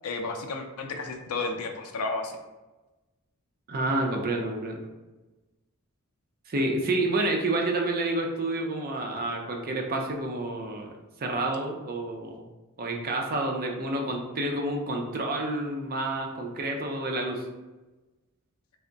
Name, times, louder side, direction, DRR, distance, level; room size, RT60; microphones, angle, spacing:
voice 1, 0.0-2.4, left 3 dB, 70° left, 4 dB, 0.5 m, -32 dB
voice 2, 3.7-4.8 6.5-12.5 12.8-17.5, right 2 dB, 40° right, 1 dB, 0.5 m, -29 dB
3.4 x 2.1 x 3.8 m, 1.1 s
head